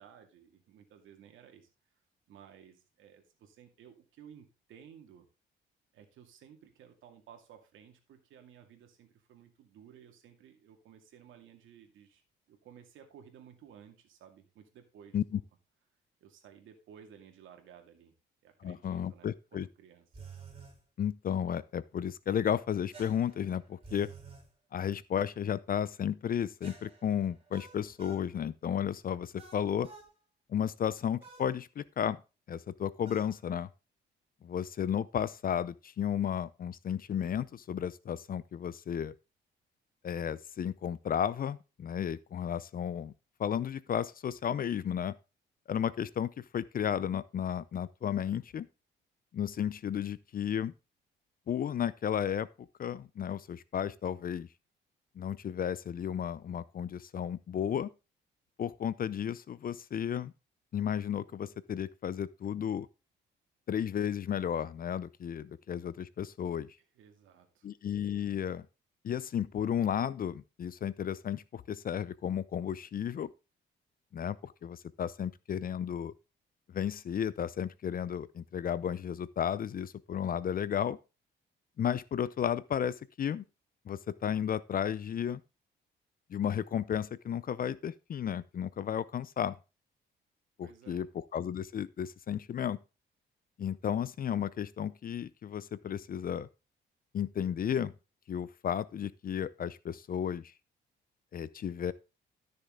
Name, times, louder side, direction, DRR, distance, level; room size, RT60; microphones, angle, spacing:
voice 1, 0.0-1.7 2.3-5.3 5.9-12.2 12.5-15.4 16.2-18.1 18.4-20.1 66.9-67.7 90.6-91.1, right 8 dB, 80° right, 2.3 m, -56 dB
voice 2, 18.6-19.7 21.0-24.1 24.7-29.9 30.5-32.2 32.5-33.7 34.4-39.1 40.0-43.1 43.4-45.1 45.7-48.7 49.3-50.7 51.5-52.5 52.8-54.5 55.2-57.9 58.6-60.3 60.7-62.9 63.7-66.7 67.6-68.6 69.0-73.3 74.1-76.1 76.7-81.0 81.8-83.4 83.9-85.4 86.3-89.6 90.6-92.8 93.6-96.5 97.1-97.9 98.3-100.5 101.3-101.9, left 9 dB, 45° left, 0.6 m, -33 dB
sound 1, 20.1-20.8 22.9-24.5 26.6-28.3 29.4-30.1 31.2-31.5 33.0-33.3, right 5 dB, 30° right, 4.3 m, -51 dB
12.5 x 6.6 x 3.8 m
cardioid pair, 90°, 20 cm